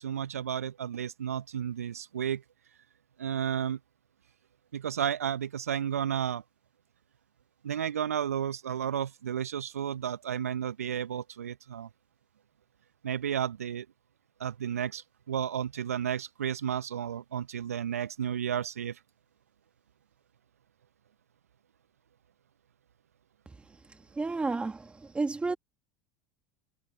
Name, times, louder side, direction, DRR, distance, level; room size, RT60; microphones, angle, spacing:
voice 1, 0.0-2.4 3.2-3.8 4.7-6.4 7.6-11.9 13.0-13.9 14.4-19.0, right 9 dB, 75° right, 1.0 m, -32 dB
voice 2, 24.2-24.8 25.1-25.6, right 3 dB, 15° right, 2.0 m, -30 dB
figure-of-eight pair, 75°, 8 cm